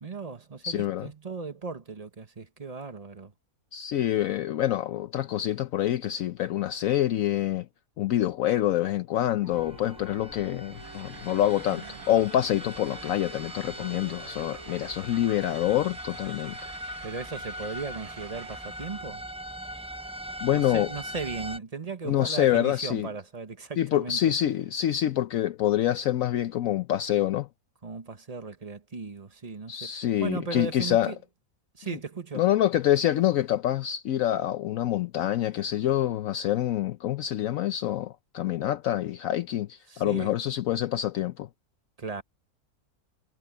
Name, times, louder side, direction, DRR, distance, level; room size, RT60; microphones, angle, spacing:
voice 1, 0.0-3.3 17.0-19.2 20.5-24.3 27.8-29.9 30.2-31.2 31.7-32.4 39.9-40.4 42.0-42.2, right 4 dB, 25° right, 1.2 m, -37 dB
voice 2, 0.6-1.1 3.7-7.7 8.0-16.6 20.4-20.9 22.0-23.1 23.8-27.5 29.7-31.1 32.3-41.5, left 12 dB, 70° left, 1.0 m, -26 dB
sound 1, 9.4-15.0, right 4 dB, 55° right, 1.8 m, -49 dB
sound 2, 9.5-21.6, equal, 5° right, 0.6 m, -41 dB
sound 3, 10.7-19.1, right 6 dB, 70° right, 1.9 m, -48 dB
omnidirectional pair, 1.6 m